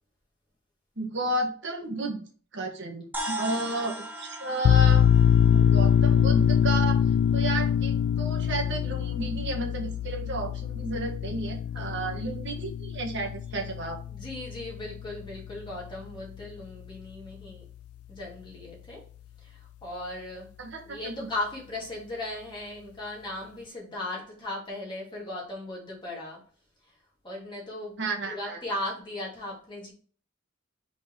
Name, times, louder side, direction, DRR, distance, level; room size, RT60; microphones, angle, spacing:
voice 1, 1.0-2.2 2.5-5.1 5.5-7.0 7.3-14.0 20.6-21.2 28.0-28.6, right 2 dB, 55° right, 1 dB, 1.5 m, -32 dB
sound 1, 3.1-7.7, right 1 dB, 10° right, 0.9 m, -39 dB
sound 2, 4.6-15.9, left 9 dB, 85° left, 0.3 m, -24 dB
voice 2, 14.1-17.6 18.1-19.0 19.4-20.5 20.9-26.4 27.2-27.9 28.2-29.9, left 1 dB, 20° left, -4 dB, 2.7 m, -37 dB
5.8 x 4.1 x 4.8 m, 0.42 s
head